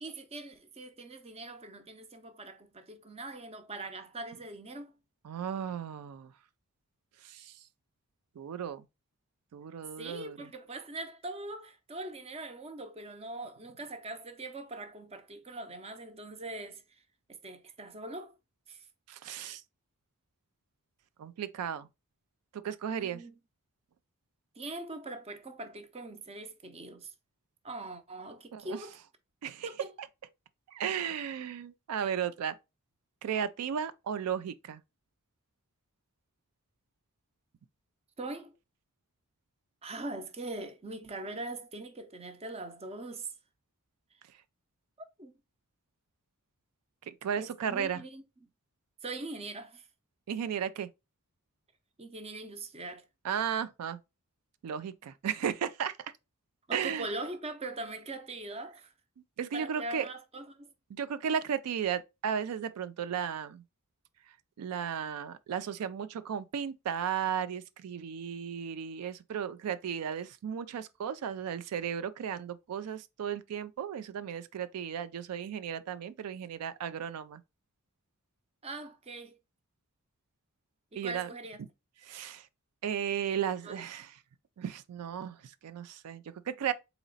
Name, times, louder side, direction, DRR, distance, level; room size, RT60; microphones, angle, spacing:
voice 1, 0.0-4.9 10.0-16.8 17.3-18.3 18.7-18.8 22.9-23.3 24.6-27.1 27.6-28.9 29.6-29.9 38.2-38.5 39.8-43.3 45.0-45.4 47.4-48.5 49.0-49.9 52.0-53.0 56.7-58.9 59.5-60.7 78.6-79.4 80.9-81.6 83.6-83.8, right 2 dB, 25° right, 0.6 m, -42 dB
voice 2, 5.2-6.3 7.2-7.6 8.4-8.8 9.5-10.5 19.1-19.6 21.2-21.9 22.5-23.2 28.5-28.8 29.4-29.7 30.0-30.1 30.7-32.5 33.2-34.8 47.0-48.0 50.3-50.9 53.2-54.0 54.6-56.0 56.7-57.1 59.4-60.1 60.9-63.6 64.6-77.4 80.9-81.3 82.0-82.5 82.8-84.2 84.6-86.7, right 8 dB, 85° right, 0.4 m, -35 dB
4.0 x 3.0 x 3.9 m
head